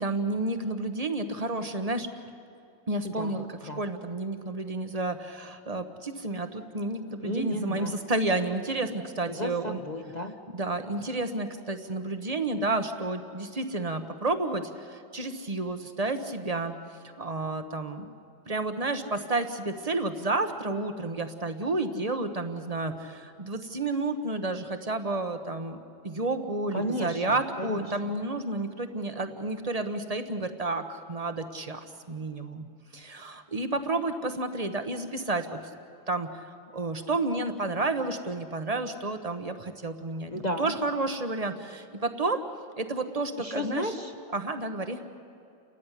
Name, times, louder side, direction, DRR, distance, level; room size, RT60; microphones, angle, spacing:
voice 1, 0.0-2.1 2.9-9.8 10.5-16.8 17.2-18.1 18.5-32.7 32.9-35.6 36.1-42.4 42.8-43.9 44.3-45.0, right 2 dB, 25° right, 8 dB, 0.9 m, -31 dB
voice 2, 3.0-3.4 3.7-3.8 7.2-7.9 9.4-10.3 26.7-28.1 40.3-40.8 43.4-44.1, left 1 dB, 30° left, 4 dB, 0.9 m, -33 dB
29.5 x 14.0 x 10.0 m, 2.6 s
omnidirectional pair, 2.0 m